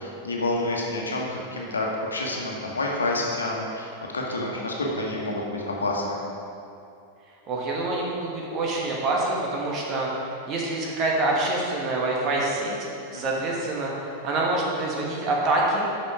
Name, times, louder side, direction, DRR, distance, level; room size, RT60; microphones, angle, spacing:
voice 1, 0.0-3.9 4.1-6.2 13.1-13.4, left 2 dB, 75° left, -1 dB, 1.3 m, -28 dB
voice 2, 7.5-10.1 10.5-12.8 13.1-15.9, right 2 dB, 35° right, -2 dB, 1.3 m, -26 dB
8.2 x 5.8 x 4.8 m, 2.7 s
figure-of-eight pair, 90°, 0 cm